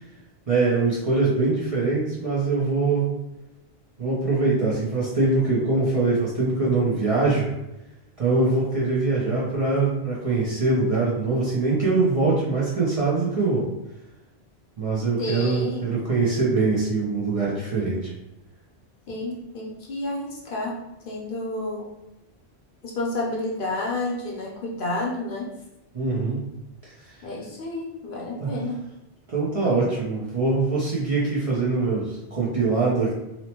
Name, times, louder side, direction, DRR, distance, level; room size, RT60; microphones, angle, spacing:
voice 1, 0.5-3.1 4.0-7.5 8.2-13.7 14.8-18.1 25.9-26.4 28.4-28.6 29.3-33.1, right 3 dB, 45° right, -7 dB, 0.5 m, -23 dB
voice 2, 15.2-15.9 19.1-20.8 21.0-21.9 22.8-25.5 27.2-28.8, left 2 dB, 60° left, -3 dB, 0.7 m, -30 dB
2.8 x 2.0 x 2.8 m, 0.93 s
omnidirectional pair, 1.1 m